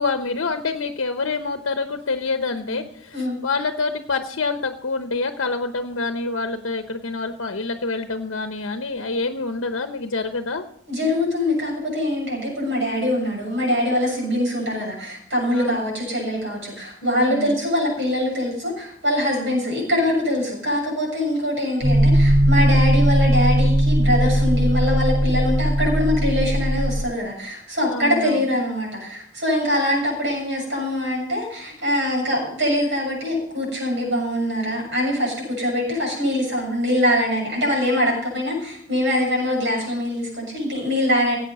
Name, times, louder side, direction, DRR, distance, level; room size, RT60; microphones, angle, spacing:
voice 1, 0.0-10.7 15.5-15.8 17.0-17.5 19.4-19.6 27.9-28.4, left 3 dB, 70° left, 7 dB, 0.9 m, -27 dB
voice 2, 10.9-41.4, left 1 dB, 60° right, -1 dB, 7.0 m, -23 dB
sound 1, 21.8-27.0, equal, 20° right, 3.8 m, -18 dB
17.0 x 8.3 x 5.4 m, 0.64 s
head